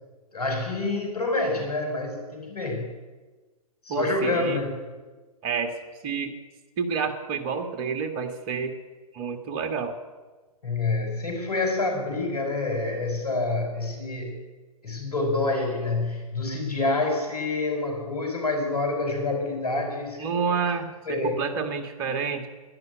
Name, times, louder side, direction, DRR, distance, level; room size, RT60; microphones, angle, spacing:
voice 1, 0.3-2.9 3.8-4.8 10.6-14.4 14.8-20.6 21.1-21.4, left 2 dB, 80° left, 3 dB, 5.6 m, -27 dB
voice 2, 3.9-4.6 5.4-5.7 6.0-6.3 6.8-8.7 9.1-10.0 20.2-22.5, right 5 dB, 40° right, 6 dB, 1.9 m, -29 dB
12.0 x 11.0 x 9.6 m, 1.3 s
figure-of-eight pair, 120°, 19 cm